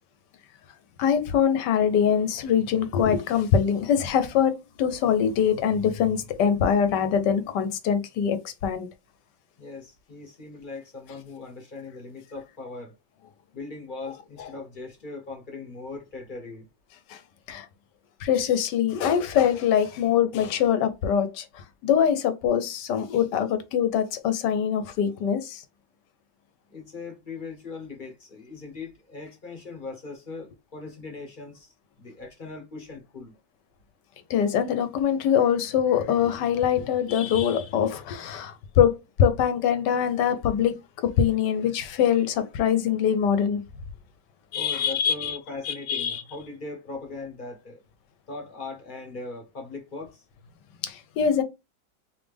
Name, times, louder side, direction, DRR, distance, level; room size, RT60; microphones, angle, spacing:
voice 1, 1.0-8.9 17.1-17.2 17.5-17.7 18.2-25.6 34.3-40.8 41.0-43.6 44.5-45.4 45.6-46.2 50.8-51.4, left 8 dB, 70° left, 1.2 m, -23 dB
voice 2, 9.6-12.9 13.5-16.7 26.7-33.3 44.5-47.8 48.3-50.2, left 3 dB, 40° left, 0.7 m, -39 dB
4.1 x 3.2 x 3.4 m
omnidirectional pair, 2.2 m